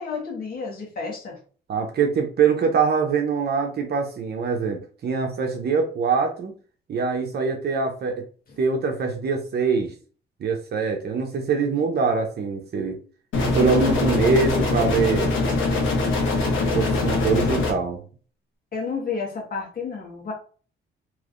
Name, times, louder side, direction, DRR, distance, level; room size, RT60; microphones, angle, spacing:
voice 1, 0.0-1.4 14.0-14.1 18.7-20.3, left 5 dB, 50° left, -1 dB, 1.5 m, -31 dB
voice 2, 1.7-6.5 6.9-8.2 8.6-9.9 10.4-13.0 13.5-15.3 16.5-18.0, right 5 dB, 55° right, 3 dB, 0.8 m, -23 dB
sound 1, 13.3-17.7, left 3 dB, 80° left, 1.2 m, -22 dB
3.2 x 3.1 x 2.5 m, 0.40 s
cardioid pair, 90°, 20 cm